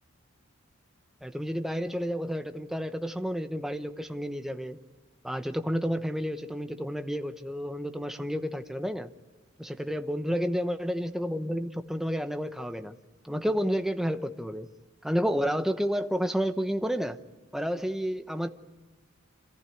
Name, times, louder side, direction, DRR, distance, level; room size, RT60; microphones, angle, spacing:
voice 1, 1.2-4.8 5.2-9.1 9.6-13.0 13.2-14.7 15.0-17.2 17.5-18.5, equal, ahead, 8 dB, 0.9 m, -30 dB
27.5 x 15.0 x 9.3 m, 1.3 s
head